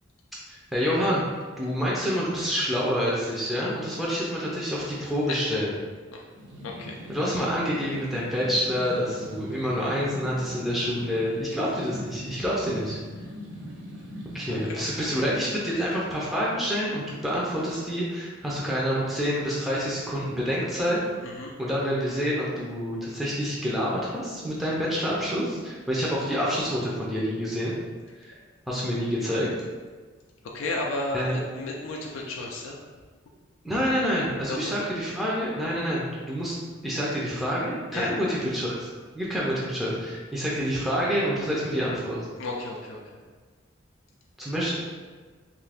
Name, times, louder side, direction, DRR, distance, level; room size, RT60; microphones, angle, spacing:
voice 1, 0.7-1.2 1.6-5.7 7.1-13.0 14.3-21.0 21.3-27.8 28.2-28.4 28.7-29.5 31.1-31.4 33.6-36.6 36.8-38.9 39.1-42.2 44.4-44.8, equal, ahead, -7 dB, 0.4 m, -27 dB
sound 1, 6.3-14.6, equal, 65° right, 1.0 m, -41 dB
voice 2, 6.6-7.0 14.5-15.1 21.2-21.5 30.5-32.8 34.5-34.8 37.9-38.1 42.4-43.0, left 2 dB, 90° left, -1 dB, 0.4 m, -33 dB
2.7 x 2.4 x 3.3 m, 1.4 s
head